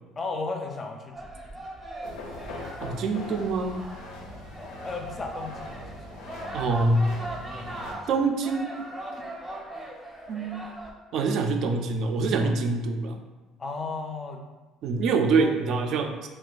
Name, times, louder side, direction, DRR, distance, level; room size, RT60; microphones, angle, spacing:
voice 1, 0.2-1.7 4.6-6.2 7.5-8.0 9.2-9.3 12.4-12.5 13.6-14.4 15.4-15.7, left 3 dB, 25° left, 4 dB, 0.4 m, -36 dB
sound 1, 1.1-10.9, right 1 dB, 15° right, 0.6 m, -40 dB
sound 2, 2.0-7.9, left 2 dB, 85° left, 0.5 m, -41 dB
voice 2, 2.8-3.8 6.5-7.1 8.1-8.7 10.3-10.6 11.1-13.2 14.8-16.3, right 3 dB, 55° right, 4 dB, 0.3 m, -25 dB
2.4 x 2.2 x 4.0 m, 1.2 s
cardioid pair, 130°, 0 cm